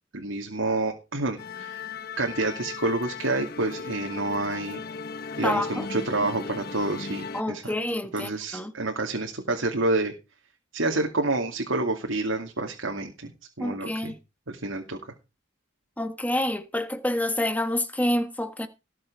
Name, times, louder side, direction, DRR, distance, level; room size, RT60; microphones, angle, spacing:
voice 1, 0.1-1.9 2.2-4.8 5.4-7.7 8.1-10.1 10.7-13.3 13.6-14.1 14.5-15.0, right 2 dB, 85° right, 2.4 m, -28 dB
Musical instrument, 1.4-7.4, left 4 dB, 50° left, 1.1 m, -37 dB
voice 2, 5.4-5.9 7.3-8.7 13.6-14.2 16.0-18.7, left 1 dB, 10° left, 1.3 m, -28 dB
18.5 x 7.7 x 4.7 m
head